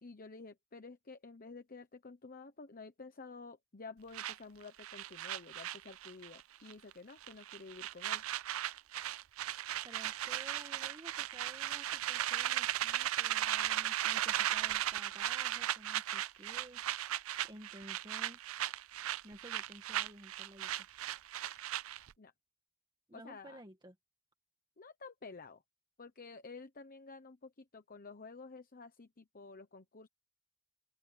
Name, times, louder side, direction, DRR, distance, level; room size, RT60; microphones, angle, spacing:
voice 1, 0.0-8.2 22.2-22.3 23.1-23.6 24.8-25.6 26.0-30.1, left 4 dB, 40° left, 1.0 m, -51 dB
sound 1, 4.1-6.4 6.7-6.9 7.2-22.1, right 12 dB, 70° right, 0.5 m, -36 dB
voice 2, 9.8-16.8 17.4-18.4 19.2-20.9 23.1-23.9, right 1 dB, 20° right, 2.1 m, -54 dB
open air
head